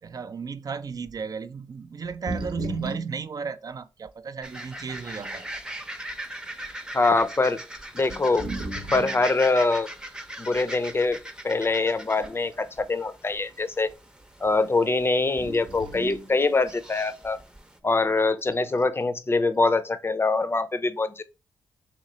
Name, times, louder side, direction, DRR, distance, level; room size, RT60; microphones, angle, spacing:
voice 1, 0.0-5.4, right 5 dB, 45° right, 0.5 m, -34 dB
sound 1, 1.1-1.2 2.1-3.2 4.1-4.2 4.9-5.5 6.2-6.4 7.3-7.4 8.0-9.3 10.9-11.1 11.9-12.6 12.9-13.0 15.4-16.3 18.4-18.9, right 1 dB, 70° right, 0.9 m, -36 dB
sound 2, 4.4-17.8, right 1 dB, 10° right, 0.7 m, -40 dB
voice 2, 6.9-7.6 7.9-8.5 8.9-9.9 10.4-11.2 11.4-13.9 14.4-17.4 17.8-21.2, left 3 dB, 25° left, 0.6 m, -24 dB
3.0 x 3.0 x 4.0 m
supercardioid pair, 50°, 9 cm